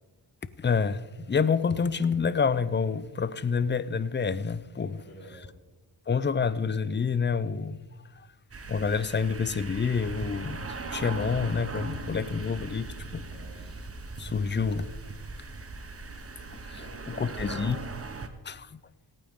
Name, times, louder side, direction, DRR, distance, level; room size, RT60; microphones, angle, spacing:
voice 1, 0.6-5.0 6.1-7.8 8.7-13.2 14.2-14.9 16.7-16.8 17.2-17.8 18.4-18.7, left 5 dB, 25° left, 0.6 m, -28 dB
voice 2, 4.9-5.6 13.2-13.6 14.4-15.2 16.8-17.9, equal, 55° left, 4.4 m, -46 dB
sound 1, 8.5-18.3, right 3 dB, 30° right, 1.1 m, -39 dB
17.5 x 8.9 x 3.7 m
cardioid pair, 80°, 48 cm